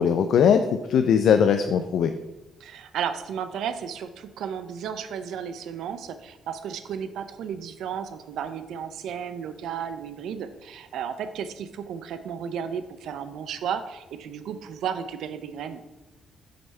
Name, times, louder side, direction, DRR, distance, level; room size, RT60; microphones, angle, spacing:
voice 1, 0.0-2.1, left 7 dB, 70° left, 8 dB, 0.3 m, -20 dB
voice 2, 2.6-15.8, right 8 dB, 80° right, 10 dB, 0.5 m, -33 dB
7.8 x 3.3 x 5.3 m, 1.0 s
cardioid pair, 90°, 0 cm